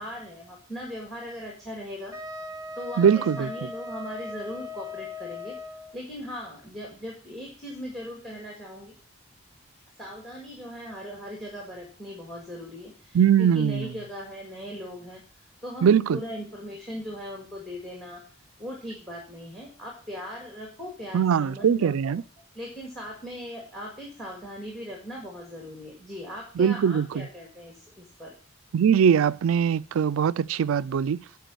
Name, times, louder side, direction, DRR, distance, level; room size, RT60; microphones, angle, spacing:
voice 1, 0.0-2.1 2.8-5.6 5.9-8.9 10.0-15.2 15.6-18.2 18.6-22.2 22.5-28.4, equal, ahead, 1.8 m, -39 dB
Wind instrument woodwind instrument, 2.1-6.0, left 2 dB, 15° right, 0.6 m, -38 dB
voice 2, 3.0-3.5 13.1-13.9 15.8-16.2 21.1-22.2 26.6-27.3 28.7-31.2, right 7 dB, 80° right, 0.3 m, -21 dB
9.1 x 4.8 x 6.8 m
head